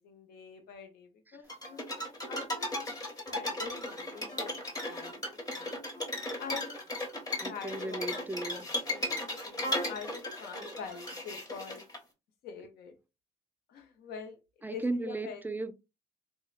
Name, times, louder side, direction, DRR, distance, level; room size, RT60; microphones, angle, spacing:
voice 1, 0.0-4.6 4.9-5.8 6.4-6.8 7.4-8.1 8.5-11.8 12.4-12.9 13.7-15.4, left 6 dB, 80° left, 0.6 m, -46 dB
sound 1, 1.5-12.0, left 1 dB, 25° left, 0.9 m, -36 dB
voice 2, 7.4-8.7 14.6-15.7, right 2 dB, 10° right, 0.4 m, -35 dB
2.8 x 2.2 x 2.3 m
supercardioid pair, 55°, 16 cm